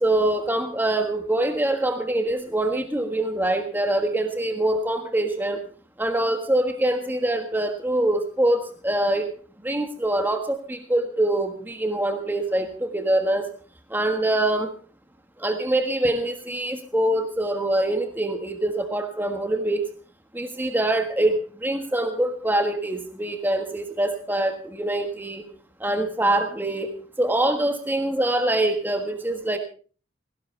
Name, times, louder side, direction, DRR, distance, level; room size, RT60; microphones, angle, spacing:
voice 1, 0.0-5.6 6.0-9.3 9.6-13.5 13.9-14.7 15.4-19.9 20.3-25.4 25.8-29.6, right 1 dB, 10° right, 6 dB, 1.5 m, -24 dB
18.0 x 17.5 x 3.3 m, 0.39 s
head